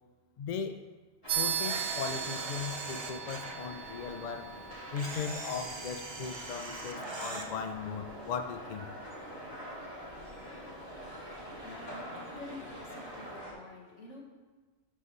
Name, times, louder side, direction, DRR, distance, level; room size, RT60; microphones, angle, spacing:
voice 1, 0.4-0.8 1.4-4.5 4.9-8.9, left 6 dB, 55° left, 8 dB, 0.5 m, -38 dB
sound 1, 1.2-13.5, equal, 20° left, 2.0 m, -45 dB
sound 2, 1.3-11.2, right 9 dB, 70° right, 1.0 m, -40 dB
Camera, 1.6-3.6 5.0-7.5, right 3 dB, 35° right, 0.5 m, -41 dB
voice 2, 11.1-14.2, left 2 dB, 80° left, -1 dB, 1.8 m, -49 dB
12.0 x 5.7 x 3.1 m, 1.3 s
omnidirectional pair, 1.2 m